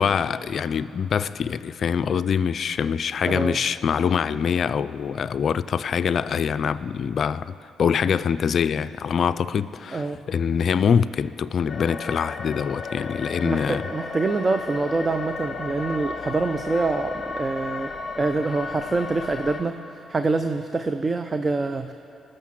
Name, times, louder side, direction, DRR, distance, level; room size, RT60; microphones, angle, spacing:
voice 1, 0.0-7.5 7.8-13.8, left 7 dB, 55° left, 14 dB, 0.4 m, -24 dB
voice 2, 3.2-3.6 9.9-10.2 13.4-21.9, right 3 dB, 30° right, 9 dB, 0.5 m, -26 dB
sound 1, 11.7-19.6, left 4 dB, 40° left, 1.1 m, -34 dB
19.0 x 6.6 x 7.5 m, 2.8 s
cardioid pair, 90°, 0 cm